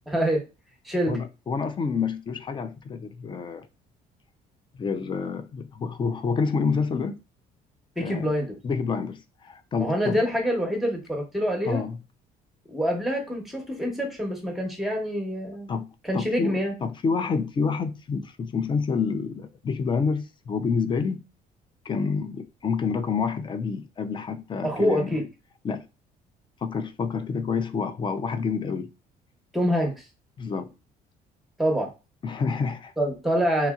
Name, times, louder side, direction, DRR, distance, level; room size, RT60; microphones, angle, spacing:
voice 1, 0.1-0.5 0.8-1.2 8.0-8.5 9.8-11.8 12.7-15.8 16.0-16.7 24.6-25.2 29.5-30.0 31.6-31.9 33.0-33.7, equal, ahead, 0.9 m, -26 dB
voice 2, 1.1-3.7 4.7-7.2 8.0-8.3 8.6-10.2 11.6-12.0 15.7-21.2 21.8-25.2 25.6-25.8 26.6-28.9 30.4-30.7 32.2-32.9, left 5 dB, 30° left, 0.4 m, -28 dB
2.9 x 2.7 x 2.3 m
cardioid pair, 110°, 17 cm